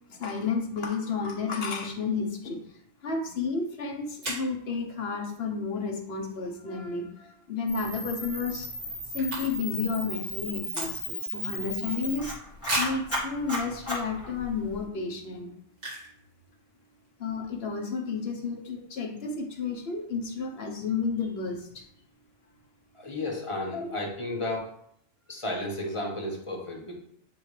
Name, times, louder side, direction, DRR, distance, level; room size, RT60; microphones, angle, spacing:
voice 1, 0.1-2.6 3.0-8.7 9.1-12.4 12.8-15.5 17.2-21.8 23.7-24.0, left 4 dB, 60° left, 2 dB, 1.1 m, -32 dB
sound 1, 3.6-3.7 4.2-4.6 7.5-7.8 8.1-8.2 8.3-9.8 10.1-11.3 11.8-11.9 12.6-13.1 13.8-13.9 14.4-14.6 15.7-16.2 16.5-16.6 16.7-17.1, right 1 dB, 70° right, 2.3 m, -34 dB
Camera, 7.7-14.8, left 1 dB, 10° left, 1.9 m, -35 dB
voice 2, 22.9-24.7 25.3-27.0, left 1 dB, 25° left, -1 dB, 1.1 m, -33 dB
8.8 x 3.3 x 3.2 m, 0.70 s
omnidirectional pair, 1.2 m